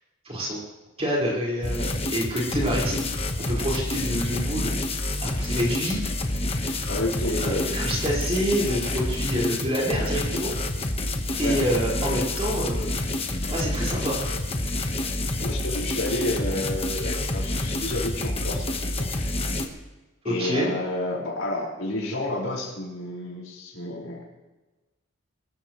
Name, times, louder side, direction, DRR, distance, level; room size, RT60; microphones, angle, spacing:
voice 1, 0.2-0.6 1.0-3.0 3.4-4.7 5.2-6.0 6.6-6.8 7.4-10.5 11.4-12.9 13.5-14.2 20.2-20.7, equal, 30° right, -4 dB, 5.1 m, -27 dB
sound 1, 1.6-19.7, left 2 dB, 30° left, 1.3 m, -28 dB
voice 2, 6.9-7.7 9.5-9.6 11.4-11.6 15.4-19.2 20.2-24.3, left 1 dB, 75° left, -3 dB, 5.3 m, -30 dB
24.5 x 14.0 x 3.2 m, 1.1 s
head